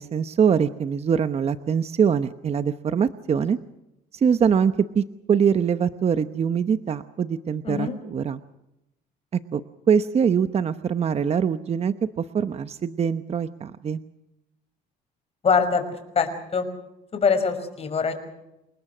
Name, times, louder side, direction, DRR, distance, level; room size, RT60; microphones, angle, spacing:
voice 1, 0.0-3.6 4.1-8.4 9.3-9.6 9.9-14.0, right 7 dB, 40° right, 11 dB, 0.9 m, -23 dB
voice 2, 7.6-8.0 15.4-15.8 16.2-16.7 17.1-18.1, left 5 dB, 35° left, 8 dB, 5.7 m, -23 dB
29.0 x 18.5 x 6.2 m, 0.89 s
cardioid pair, 110°, 17 cm